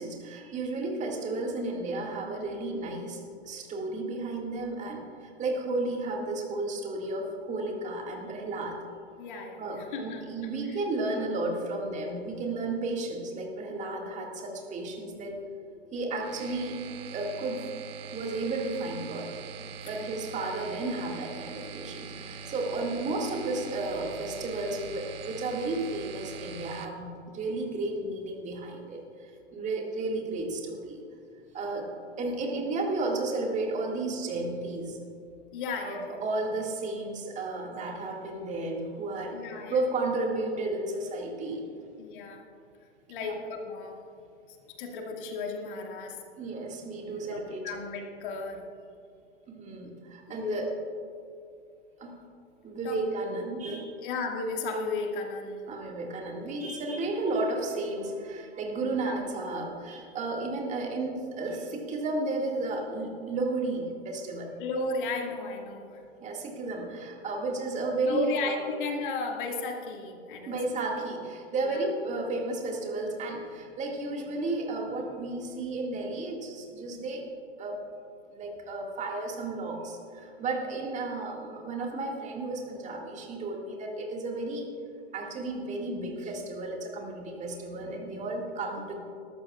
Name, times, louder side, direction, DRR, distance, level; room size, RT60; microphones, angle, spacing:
voice 1, 0.0-8.8 9.6-15.4 15.9-16.8 17.1-17.7 18.1-19.3 19.9-31.0 31.5-31.9 32.2-35.0 35.8-39.4 39.7-41.6 43.2-43.4 46.4-47.8 49.5-50.7 52.0-52.2 52.6-53.9 55.7-64.5 66.2-68.6 70.5-77.3 77.6-77.8 78.3-84.7 85.1-89.0, right 2 dB, 20° right, 1 dB, 2.0 m, -33 dB
voice 2, 9.2-10.3 10.6-10.8 19.6-19.9 22.1-22.5 29.6-29.7 35.5-36.2 39.3-39.8 42.0-42.5 43.1-44.0 44.8-46.2 47.1-48.7 50.3-50.6 52.8-53.0 54.0-55.8 58.9-59.2 64.6-66.0 68.0-70.6 71.6-71.9, left 3 dB, 50° left, 2 dB, 2.0 m, -35 dB
sound 1, 16.2-26.8, right 7 dB, 60° right, 1.2 m, -43 dB
20.0 x 13.0 x 2.4 m, 2.4 s
figure-of-eight pair, 105°, 33 cm